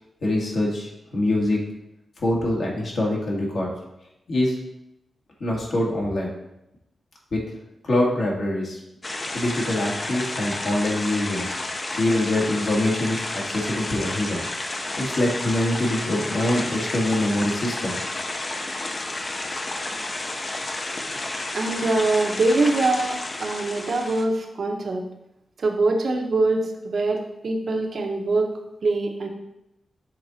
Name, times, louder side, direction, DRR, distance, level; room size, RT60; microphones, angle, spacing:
voice 1, 0.2-1.6 2.2-3.7 4.3-4.6 5.4-6.3 7.3-7.4 7.8-8.8 9.3-11.6 12.0-14.4 15.0-18.0, left 1 dB, 65° left, -3 dB, 1.8 m, -24 dB
sound 1, 9.0-24.3, left 2 dB, 35° left, 0.6 m, -31 dB
voice 2, 21.5-25.0 25.6-28.5 28.8-29.3, right 2 dB, 60° right, 2 dB, 0.9 m, -23 dB
6.5 x 3.9 x 4.1 m, 0.87 s
cardioid pair, 90°, 0 cm